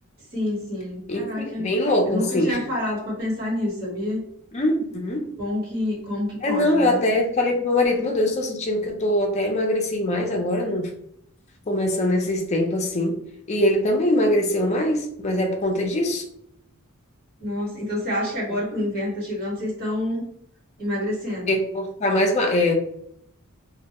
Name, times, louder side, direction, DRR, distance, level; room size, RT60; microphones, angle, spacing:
voice 1, 0.3-1.7 2.1-4.2 5.4-7.0 17.4-20.3 20.8-21.5, left 1 dB, 50° right, -5 dB, 1.2 m, -28 dB
voice 2, 1.6-2.6 4.5-5.3 6.4-10.9 11.7-13.2 13.5-16.2 18.7-18.8 21.5-22.8, left 1 dB, 30° left, 2 dB, 0.4 m, -22 dB
2.2 x 2.0 x 2.8 m, 0.70 s
head